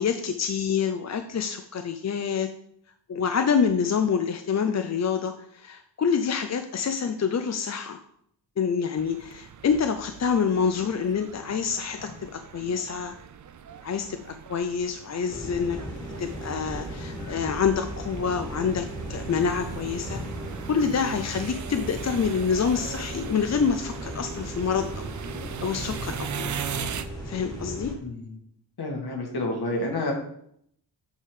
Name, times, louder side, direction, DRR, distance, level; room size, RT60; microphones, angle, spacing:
voice 1, 0.0-2.5 3.1-8.0 8.6-13.1 13.8-14.2 14.5-15.8 16.2-20.2 20.7-25.1 25.6-26.5 27.3-27.9, left 6 dB, 40° left, 7 dB, 0.4 m, -27 dB
sound 1, 9.0-27.0, right 8 dB, 45° right, 0.4 m, -40 dB
sound 2, 15.3-27.9, equal, 10° left, 1.5 m, -37 dB
voice 2, 28.0-28.4 28.8-30.1, left 2 dB, 60° left, 0 dB, 1.8 m, -29 dB
8.3 x 3.7 x 4.8 m, 0.69 s
wide cardioid pair, 140°, 43 cm